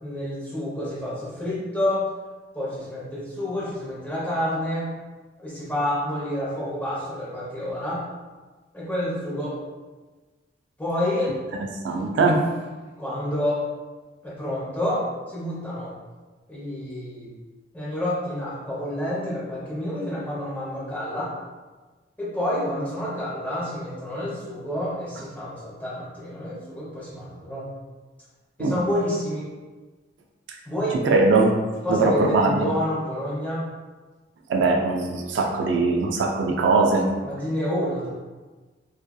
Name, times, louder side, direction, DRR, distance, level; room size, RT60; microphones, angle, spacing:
voice 1, 0.0-2.1 2.5-5.0 5.4-8.0 8.7-9.6 10.8-11.3 13.0-13.6 14.2-15.1 15.3-15.9 16.5-17.3 17.7-21.3 22.2-27.7 28.6-29.5 30.7-31.0 31.8-33.7 37.2-38.1, left 1 dB, 10° left, -9 dB, 0.8 m, -28 dB
voice 2, 11.8-12.5 28.6-28.8 31.0-31.5 31.9-32.7 34.5-37.1, right 3 dB, 75° right, 1 dB, 0.3 m, -20 dB
2.6 x 2.4 x 2.3 m, 1.3 s
head